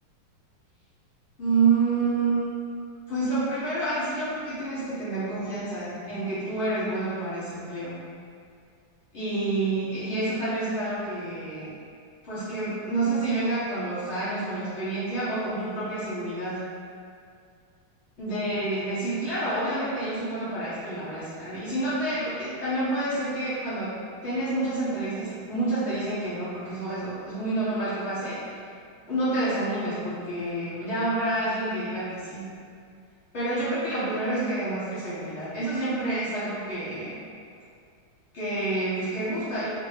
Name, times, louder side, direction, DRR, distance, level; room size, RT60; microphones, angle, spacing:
voice 1, 1.4-2.4 3.1-8.0 9.1-11.7 12.2-16.6 18.2-24.0 24.2-28.4 29.1-32.4 33.3-37.1 38.3-39.7, right 2 dB, 40° left, -14 dB, 1.2 m, -28 dB
3.9 x 2.8 x 3.3 m, 2.3 s
omnidirectional pair, 2.3 m